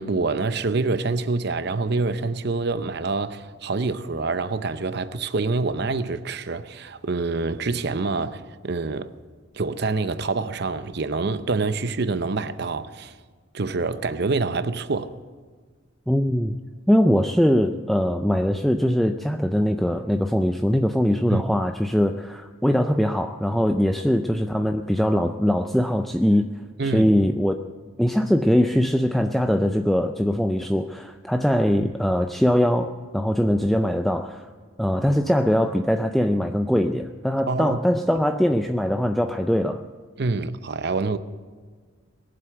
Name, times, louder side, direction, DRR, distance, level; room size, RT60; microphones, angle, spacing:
voice 1, 0.0-9.1 9.5-13.1 13.5-15.1 21.3-21.4 26.8-27.1 31.8-31.9 37.5-38.0 40.2-41.2, right 3 dB, 55° right, 0.7 m, -26 dB
voice 2, 16.1-16.6 16.9-26.5 26.8-27.6 28.0-34.5 34.8-39.8, equal, ahead, 0.4 m, -22 dB
21.0 x 7.7 x 7.8 m
head